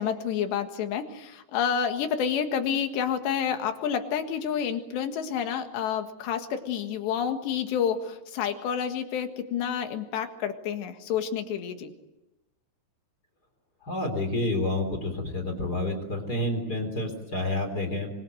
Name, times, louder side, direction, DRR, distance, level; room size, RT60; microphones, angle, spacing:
voice 1, 0.0-11.9, left 8 dB, 90° left, 6 dB, 4.0 m, -29 dB
voice 2, 13.8-18.1, left 1 dB, 25° left, 5 dB, 3.6 m, -29 dB
25.0 x 25.0 x 7.9 m, 0.96 s
omnidirectional pair, 4.8 m